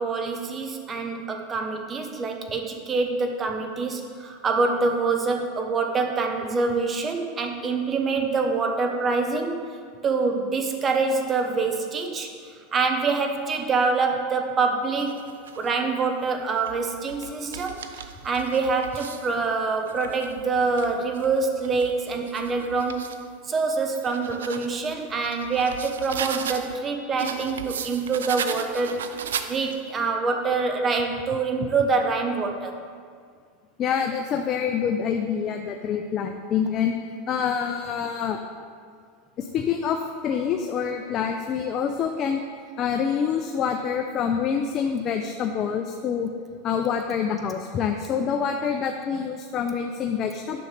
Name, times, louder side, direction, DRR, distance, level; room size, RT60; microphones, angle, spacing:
voice 1, 0.0-9.6 10.0-15.3 15.6-23.1 23.5-29.0 29.4-32.7, right 4 dB, 30° right, 4 dB, 1.0 m, -25 dB
sound 1, 14.9-15.7 16.4-19.3 19.8-23.2 23.7-26.8 27.2-29.9, right 7 dB, 85° right, 0.4 m, -37 dB
voice 2, 33.8-36.9 37.3-38.4 39.4-42.4 42.8-46.3 46.6-50.6, left 7 dB, 40° left, 4 dB, 0.5 m, -26 dB
9.3 x 6.3 x 3.3 m, 2.1 s
hypercardioid pair, 100°, 0 cm